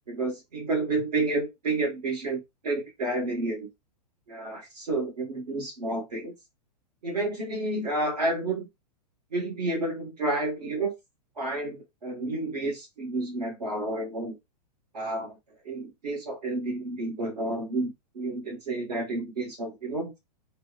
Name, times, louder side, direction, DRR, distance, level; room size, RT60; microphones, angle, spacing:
voice 1, 0.1-3.7 4.3-6.3 7.0-8.7 9.3-10.9 11.4-14.4 14.9-15.3 15.6-20.1, right 2 dB, 70° right, 1.4 m, -30 dB
3.4 x 2.1 x 2.4 m
figure-of-eight pair, 105°, 21 cm